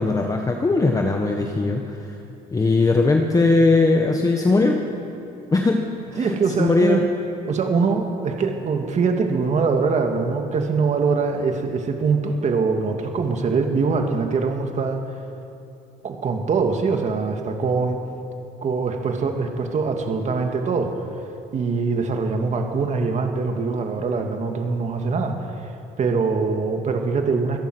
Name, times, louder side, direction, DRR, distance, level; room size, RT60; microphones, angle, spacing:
voice 1, 0.0-2.2 2.5-4.8 5.5-7.0, left 3 dB, 20° left, 2 dB, 1.5 m, -20 dB
voice 2, 6.2-7.0 7.5-15.0 16.0-18.0 18.6-21.0 21.5-25.7 26.0-27.6, right 4 dB, 45° right, 4 dB, 2.2 m, -23 dB
24.5 x 17.5 x 6.3 m, 2.7 s
cardioid pair, 110°, 17 cm